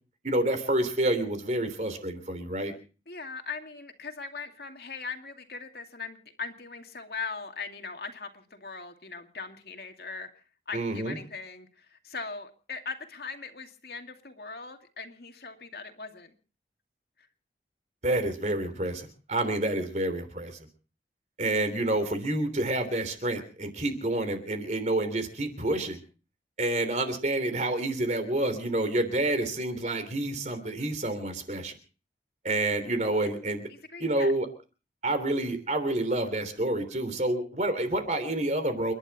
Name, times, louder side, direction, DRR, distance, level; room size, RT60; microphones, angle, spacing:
voice 1, 0.2-2.7 10.7-11.2 18.0-20.6 21.4-26.0 26.6-31.7 32.4-33.7 34.0-34.5 35.0-38.9, right 1 dB, 40° right, 9 dB, 3.3 m, -28 dB
voice 2, 3.1-16.3 33.1-33.3 33.7-34.3, left 4 dB, 65° left, 5 dB, 2.4 m, -40 dB
29.5 x 11.5 x 4.2 m, 0.37 s
head